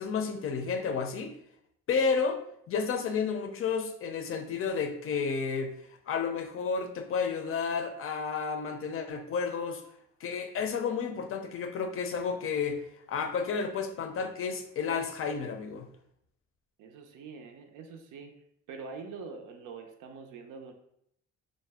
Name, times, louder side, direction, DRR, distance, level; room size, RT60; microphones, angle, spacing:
voice 1, 0.0-1.3 1.9-2.4 2.7-5.7 6.1-9.8 10.2-12.8 13.1-15.9, left 5 dB, 45° left, 5 dB, 0.5 m, -31 dB
voice 2, 16.8-18.3 18.7-20.7, right 4 dB, 85° right, 4 dB, 0.5 m, -44 dB
2.5 x 2.1 x 3.3 m, 0.72 s
cardioid pair, 90°, 30 cm